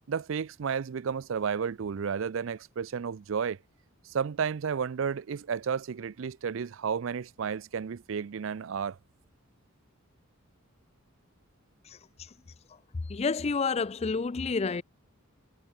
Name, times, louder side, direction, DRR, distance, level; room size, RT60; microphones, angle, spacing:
voice 1, 0.1-3.6 4.1-9.0, right 6 dB, 60° right, 0.4 m, -32 dB
voice 2, 13.1-14.8, left 4 dB, 30° left, 0.4 m, -29 dB
head